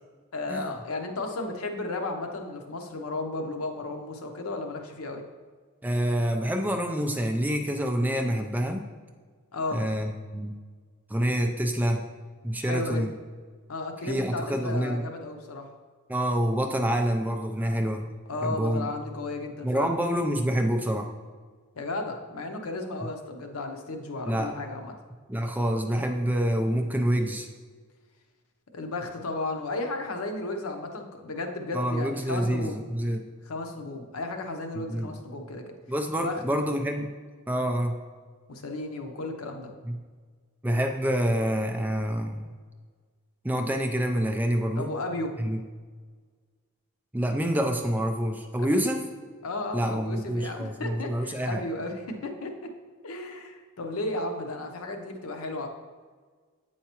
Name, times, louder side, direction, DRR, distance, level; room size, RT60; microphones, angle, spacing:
voice 1, 0.3-5.2 9.5-9.8 12.7-13.0 13.7-15.7 18.3-19.9 21.7-24.9 28.7-32.8 33.4-35.6 36.2-36.8 38.5-39.7 44.8-45.4 48.6-48.9 49.4-52.7 53.0-55.7, left 2 dB, 85° left, 4 dB, 0.7 m, -34 dB
voice 2, 5.8-8.9 9.7-10.6 11.1-12.0 12.4-13.1 14.0-15.0 16.1-18.0 18.4-18.9 19.6-21.1 24.3-24.5 25.3-27.5 31.7-33.2 34.8-35.1 35.9-37.1 37.5-38.0 39.8-40.0 40.6-42.4 43.4-44.9 45.4-45.6 47.1-49.0 49.7-51.6, equal, 10° right, 3 dB, 0.3 m, -27 dB
7.9 x 4.7 x 2.9 m, 1.5 s
head